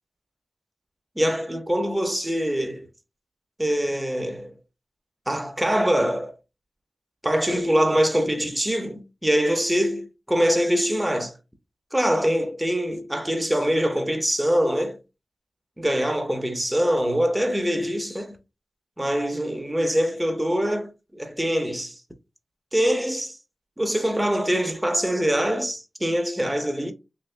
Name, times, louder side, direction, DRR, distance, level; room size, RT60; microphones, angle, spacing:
voice 1, 1.2-2.9 3.6-4.5 5.3-6.3 7.2-11.3 11.9-15.0 15.8-18.4 19.0-22.0 22.7-23.4 23.8-26.9, equal, 10° right, 0.7 m, -24 dB
3.0 x 2.6 x 3.2 m
wide cardioid pair, 85°, 0 cm